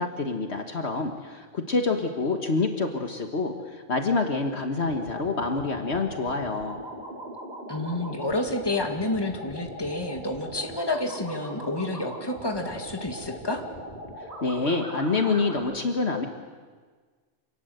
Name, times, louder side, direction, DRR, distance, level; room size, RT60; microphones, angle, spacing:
voice 1, 0.0-6.8 14.4-16.3, left 3 dB, 55° left, 5 dB, 1.7 m, -27 dB
sound 1, 4.8-15.6, equal, 35° right, 4.1 m, -40 dB
voice 2, 7.7-13.6, left 2 dB, 20° left, 4 dB, 2.1 m, -29 dB
27.0 x 19.0 x 8.0 m, 1.5 s
omnidirectional pair, 1.3 m